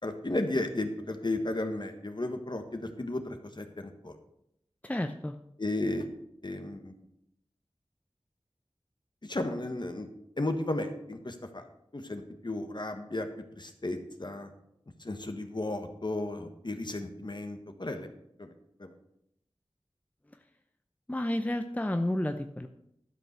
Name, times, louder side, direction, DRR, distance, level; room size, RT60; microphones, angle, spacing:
voice 1, 0.0-4.2 5.6-6.1 6.4-7.0 9.2-10.1 10.4-11.7 11.9-13.3 13.6-14.5 15.0-18.1 18.4-18.5 18.8-18.9, left 2 dB, 50° left, 6 dB, 1.4 m, -34 dB
voice 2, 4.8-5.4 21.1-22.7, left 1 dB, 15° left, 7 dB, 0.6 m, -31 dB
12.5 x 5.4 x 6.7 m, 0.79 s
wide cardioid pair, 45°, 10 cm